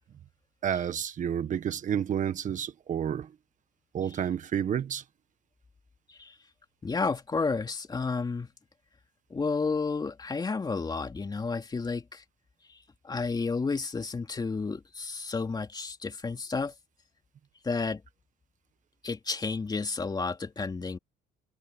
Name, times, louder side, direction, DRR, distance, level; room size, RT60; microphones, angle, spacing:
voice 1, 0.6-3.3 3.9-5.0, right 9 dB, 50° right, 1.5 m, -30 dB
voice 2, 6.8-8.5 9.3-12.2 13.0-16.7 17.6-18.0 19.0-21.0, left 4 dB, 25° left, 3.0 m, -31 dB
cardioid pair, 110°, 17 cm